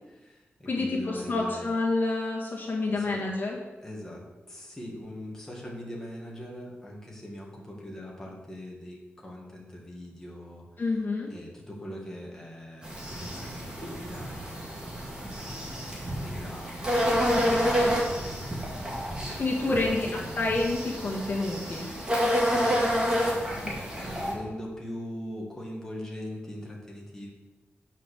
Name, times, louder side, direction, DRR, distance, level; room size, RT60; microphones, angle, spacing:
voice 1, 0.1-1.7 2.9-3.3 3.8-10.8 11.3-15.8 16.2-17.4 17.9-18.6 19.2-20.4 22.5-23.5 24.0-27.3, left 1 dB, 10° left, -3 dB, 2.0 m, -42 dB
voice 2, 0.7-3.6 10.8-11.3 17.3-18.0 19.4-20.1 20.4-21.9 23.6-23.7, left 2 dB, 45° left, -3 dB, 1.6 m, -28 dB
sound 1, 12.8-24.3, equal, 15° right, 2.1 m, -29 dB
9.2 x 5.1 x 6.5 m, 1.2 s
wide cardioid pair, 140°, 5 cm